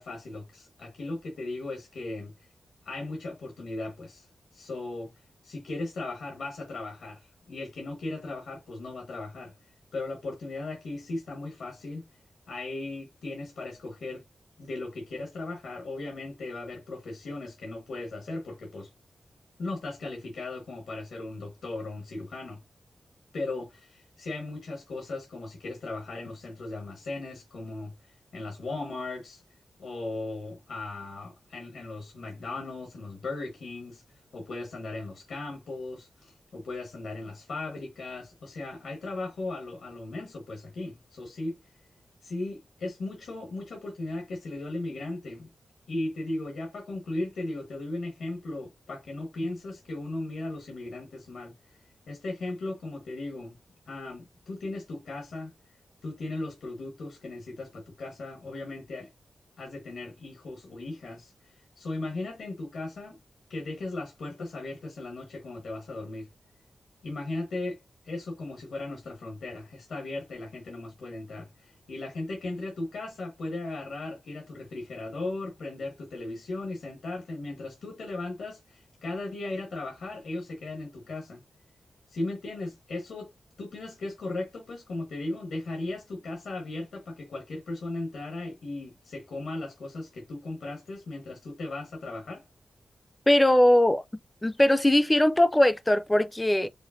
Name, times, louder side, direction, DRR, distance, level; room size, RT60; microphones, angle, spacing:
voice 1, 0.0-2.3 2.8-12.0 12.5-14.2 14.6-18.9 19.6-22.6 23.3-29.4 29.8-41.8 42.2-45.5 45.9-53.6 53.9-55.5 56.0-59.1 59.6-63.2 63.5-66.3 67.0-67.8 68.0-81.4 82.1-83.3 83.6-92.5, left 2 dB, 90° left, 1.3 m, -37 dB
voice 2, 93.3-94.0 94.4-96.7, left 1 dB, 10° left, 0.4 m, -20 dB
5.0 x 2.5 x 2.6 m
wide cardioid pair, 160°, 0 cm